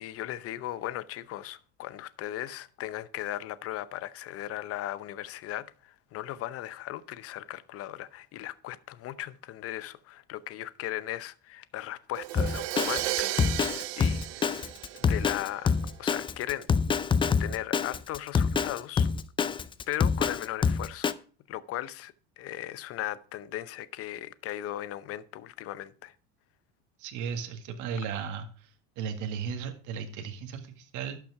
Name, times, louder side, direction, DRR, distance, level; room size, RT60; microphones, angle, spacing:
voice 1, 0.0-14.6 14.9-15.7 16.0-16.7 17.4-19.1 19.9-21.2 21.5-26.1, left 13 dB, 40° left, 0.8 m, -37 dB
Crash cymbal, 12.1-15.9, right 16 dB, 90° right, 0.8 m, -34 dB
Drum kit, 12.4-21.1, left 6 dB, 15° left, 0.4 m, -26 dB
voice 2, 27.0-28.5 29.0-31.2, right 7 dB, 60° right, 1.9 m, -35 dB
12.0 x 6.0 x 4.7 m
supercardioid pair, 125°, 34 cm